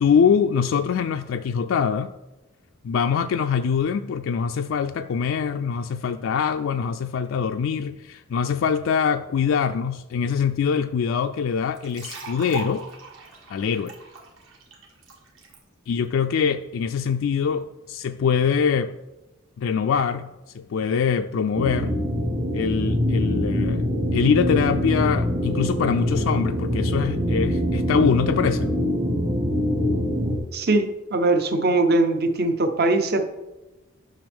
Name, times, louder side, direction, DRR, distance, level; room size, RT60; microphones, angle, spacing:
voice 1, 0.0-2.1 2.8-12.8 13.5-13.9 15.9-18.9 19.6-22.0 22.5-28.7, left 6 dB, 65° left, 7 dB, 0.3 m, -23 dB
sound 1, 11.7-15.6, right 4 dB, 65° right, 1.8 m, -40 dB
sound 2, 21.6-30.4, equal, 30° right, 1.2 m, -24 dB
voice 2, 30.5-33.2, right 2 dB, 50° right, 8 dB, 0.7 m, -21 dB
10.0 x 6.0 x 3.5 m, 1.0 s
head